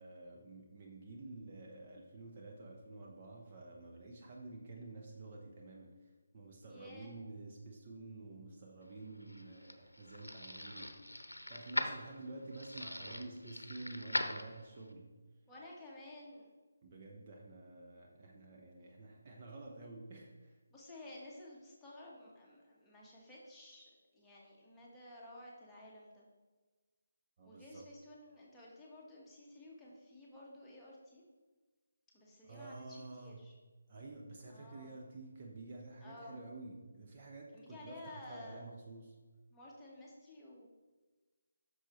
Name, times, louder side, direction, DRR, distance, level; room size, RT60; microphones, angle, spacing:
voice 1, 0.0-11.0 11.2-15.1 16.8-20.6 27.4-27.9 32.4-33.4 33.9-39.2, right 2 dB, 35° right, -1 dB, 0.9 m, -50 dB
voice 2, 6.7-7.3 15.5-16.5 20.7-26.3 27.4-31.2 32.1-33.5 34.5-35.0 36.0-36.4 37.5-38.7 39.5-40.6, left 1 dB, 5° left, -6 dB, 1.3 m, -53 dB
sound 1, 9.0-14.9, left 1 dB, 85° left, 0.7 m, -41 dB
7.9 x 6.3 x 3.1 m, 1.3 s
figure-of-eight pair, 150°, 0 cm